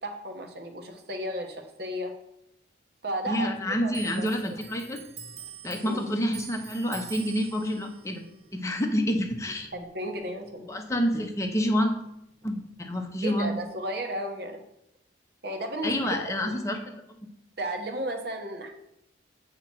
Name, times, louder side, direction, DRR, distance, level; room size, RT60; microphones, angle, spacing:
voice 1, 0.0-2.1 3.0-4.3 5.8-6.0 9.7-10.7 13.2-14.6 15.4-16.6 17.6-18.7, right 1 dB, 55° right, 4 dB, 1.0 m, -34 dB
voice 2, 3.3-5.0 5.6-8.2 8.5-9.7 10.7-11.9 12.4-13.6 15.8-17.3, equal, 15° left, 3 dB, 0.6 m, -28 dB
Clock, 3.9-10.9 11.2-12.5 12.8-13.7, right 8 dB, 35° right, 0.5 m, -46 dB
8.4 x 2.9 x 6.0 m, 0.80 s
head